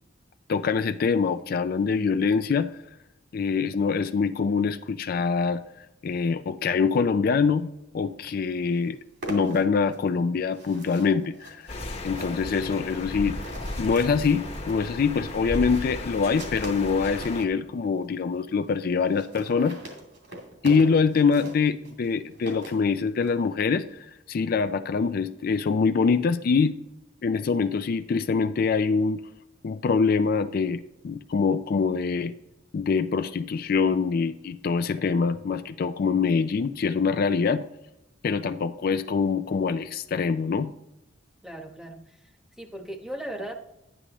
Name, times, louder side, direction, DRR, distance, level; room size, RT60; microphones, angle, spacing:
voice 1, 0.5-2.7 3.3-5.6 6.0-9.0 9.3-11.8 12.0-13.4 13.8-19.8 20.6-26.8 27.2-29.2 29.6-32.3 32.7-37.7 38.2-40.7, left 5 dB, 50° left, 10 dB, 0.4 m, -24 dB
sound 1, 8.2-8.3 8.6-17.4 18.0-18.1 18.3-18.4 18.6-18.7 19.0-23.4, right 1 dB, 65° right, 2.6 m, -42 dB
sound 2, 11.7-17.5, left 2 dB, 35° left, 1.2 m, -35 dB
voice 2, 41.4-42.0 42.6-43.8, right 1 dB, 5° right, 3 dB, 1.1 m, -37 dB
11.0 x 9.9 x 3.0 m, 0.89 s
head